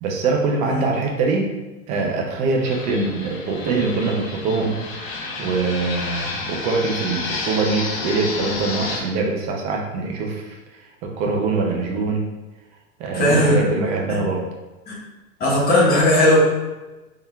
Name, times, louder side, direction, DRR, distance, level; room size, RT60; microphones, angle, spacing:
voice 1, 0.0-1.5 1.9-4.8 5.4-10.6 11.0-12.2 13.0-14.5, right 3 dB, 20° right, 1 dB, 0.3 m, -23 dB
voice 2, 0.6-1.0 13.1-13.6 14.9-15.0 15.4-16.4, left 1 dB, 20° left, -6 dB, 1.4 m, -17 dB
Fixed-wing aircraft airplane, 2.6-9.0, left 3 dB, 70° left, 1.1 m, -30 dB
4.1 x 3.5 x 2.3 m, 1.1 s
hypercardioid pair, 120°, 42 cm